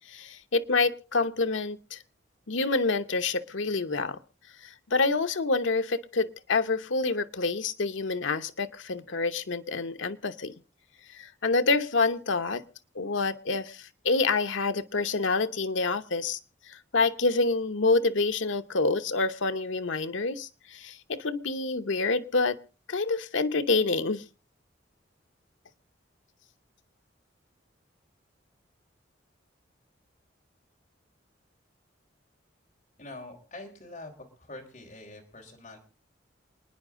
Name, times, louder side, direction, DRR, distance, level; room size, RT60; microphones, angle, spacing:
voice 1, 0.0-2.0 2.5-4.2 4.6-10.5 11.1-12.6 12.9-16.4 16.7-22.6 22.9-24.2, left 3 dB, 85° left, 9 dB, 0.9 m, -27 dB
voice 2, 33.0-34.1 34.4-35.8, left 2 dB, 35° left, 0 dB, 4.1 m, -44 dB
28.5 x 10.0 x 3.7 m, 0.34 s
head